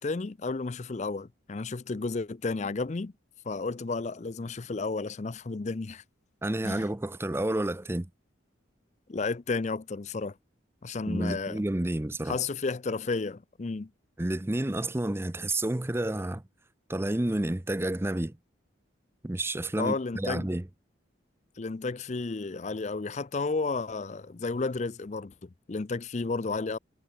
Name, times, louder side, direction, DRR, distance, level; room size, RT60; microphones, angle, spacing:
voice 1, 0.0-3.1 3.5-6.0 6.6-6.8 9.1-10.4 10.8-11.6 12.3-13.9 19.8-20.5 21.6-26.8, left 3 dB, 35° left, 0.5 m, -32 dB
voice 2, 6.4-8.1 11.1-12.4 14.2-16.4 16.9-18.3 19.2-20.6, right 1 dB, 10° right, 0.5 m, -30 dB
head